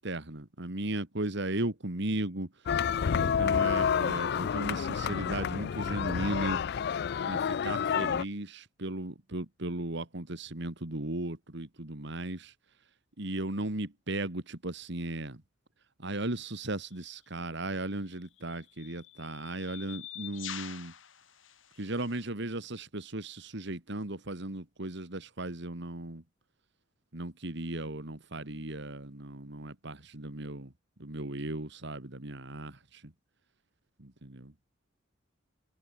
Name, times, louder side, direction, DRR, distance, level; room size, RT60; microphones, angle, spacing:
voice 1, 0.0-2.5 3.1-6.6 7.3-12.5 13.2-15.4 16.0-20.9 21.8-26.2 27.1-30.7 31.0-33.1 34.0-34.5, right 2 dB, 65° right, 2.4 m, -36 dB
sound 1, 2.7-8.2, left 7 dB, 55° left, 0.4 m, -29 dB
sound 2, 16.9-17.1 18.1-22.3, left 11 dB, 75° left, 3.2 m, -46 dB
head